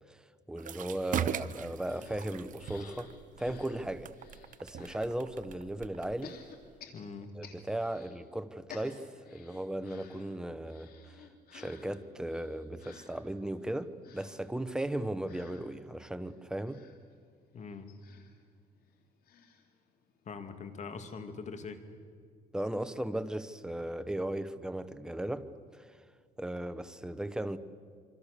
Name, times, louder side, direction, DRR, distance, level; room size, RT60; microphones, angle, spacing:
voice 1, 0.5-4.1 4.6-6.4 7.3-11.2 11.5-16.8 22.5-26.0 26.4-27.6, right 1 dB, 5° right, 12 dB, 1.0 m, -37 dB
sound 1, 0.6-6.8, right 9 dB, 50° right, 0.9 m, -40 dB
sound 2, 1.9-5.1 6.2-8.2 8.5-20.4 20.8-20.9 21.1-21.2, left 6 dB, 65° left, 3.1 m, -55 dB
voice 2, 6.9-7.3 17.5-17.9 20.2-21.8, left 5 dB, 45° left, 8 dB, 2.4 m, -42 dB
26.0 x 25.5 x 6.9 m, 2.1 s
cardioid pair, 110°, 17 cm